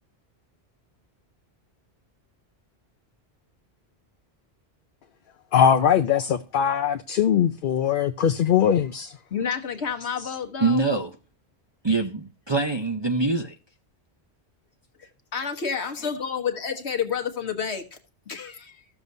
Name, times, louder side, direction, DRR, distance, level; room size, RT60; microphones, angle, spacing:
voice 1, 5.5-9.1, left 8 dB, 60° left, 0.7 m, -21 dB
voice 2, 9.3-10.9 15.0-18.0 18.3-18.8, left 7 dB, 80° left, 1.5 m, -30 dB
voice 3, 10.6-11.1 11.8-13.5, right 3 dB, 30° right, 0.7 m, -24 dB
15.0 x 7.1 x 2.6 m
omnidirectional pair, 1.1 m